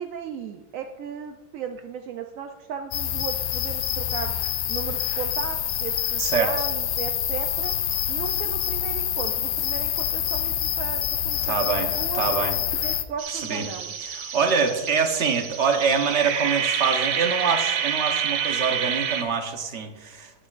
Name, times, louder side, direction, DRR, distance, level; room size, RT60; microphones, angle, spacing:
voice 1, 0.0-4.3 4.7-7.7 8.1-11.6 12.0-12.3 12.8-13.9, right 7 dB, 70° right, 5 dB, 0.8 m, -36 dB
sound 1, 2.9-13.0, left 11 dB, 85° left, 1.2 m, -26 dB
voice 2, 6.2-6.6 11.4-12.6 13.3-13.7 14.0-20.3, right 5 dB, 45° right, 5 dB, 1.2 m, -25 dB
sound 2, 13.2-19.2, right 8 dB, 85° right, 1.4 m, -28 dB
17.5 x 6.2 x 2.5 m, 1.2 s
omnidirectional pair, 1.8 m